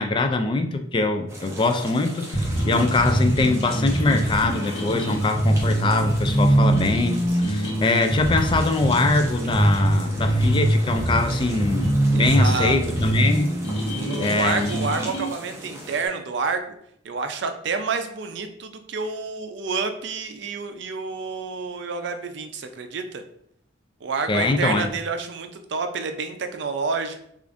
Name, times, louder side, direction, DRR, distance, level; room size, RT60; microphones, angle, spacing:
voice 1, 0.0-13.6 14.2-14.7 24.3-24.9, left 3 dB, 25° left, 7 dB, 0.3 m, -23 dB
sound 1, 1.3-16.1, equal, 15° right, 0.7 m, -39 dB
sound 2, 2.3-15.3, right 1 dB, 65° left, 1.0 m, -23 dB
voice 2, 12.1-12.7 14.0-16.7 17.0-23.2 24.0-27.3, right 4 dB, 60° right, 8 dB, 0.4 m, -29 dB
6.6 x 2.5 x 2.5 m, 0.72 s
head